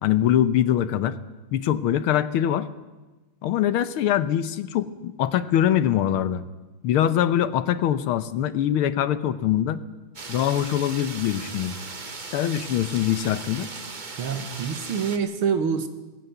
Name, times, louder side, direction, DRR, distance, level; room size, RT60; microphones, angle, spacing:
voice 1, 0.0-1.2 1.5-2.7 3.4-6.4 6.8-9.8 10.3-11.7 12.3-13.7, left 11 dB, 90° left, 13 dB, 1.8 m, -23 dB
sound 1, 10.2-15.2, right 4 dB, 30° right, 1.0 m, -38 dB
voice 2, 14.2-15.9, right 6 dB, 85° right, 9 dB, 2.4 m, -26 dB
18.5 x 17.0 x 9.2 m, 1.2 s
omnidirectional pair, 2.3 m